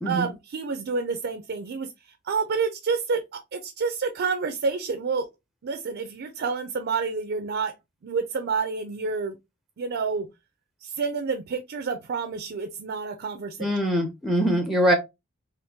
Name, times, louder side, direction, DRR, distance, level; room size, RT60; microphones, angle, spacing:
voice 1, 0.1-1.9 2.3-5.3 5.6-7.7 8.0-9.3 9.8-10.3 10.8-13.7, right 4 dB, 55° right, 0.4 m, -29 dB
voice 2, 13.6-14.9, equal, ahead, 0.5 m, -23 dB
3.6 x 2.5 x 2.7 m
head